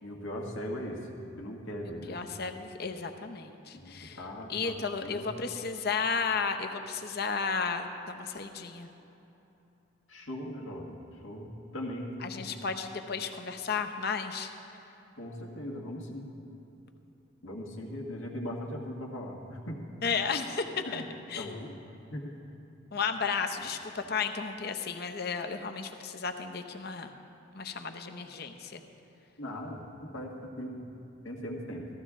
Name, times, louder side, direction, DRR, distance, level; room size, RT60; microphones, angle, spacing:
voice 1, 0.0-1.1 1.4-2.2 3.7-5.5 10.1-12.5 15.2-16.3 17.4-19.8 20.9-21.1 21.4-21.7 22.1-22.4 29.4-29.8 30.1-30.8 31.2-31.9, equal, 75° left, -1 dB, 1.7 m, -39 dB
voice 2, 2.1-4.2 4.5-8.9 12.2-14.5 20.0-21.0 21.3-21.7 22.9-27.1 27.5-28.8, left 5 dB, 50° left, 6 dB, 0.7 m, -33 dB
15.0 x 14.5 x 3.7 m, 3.0 s
head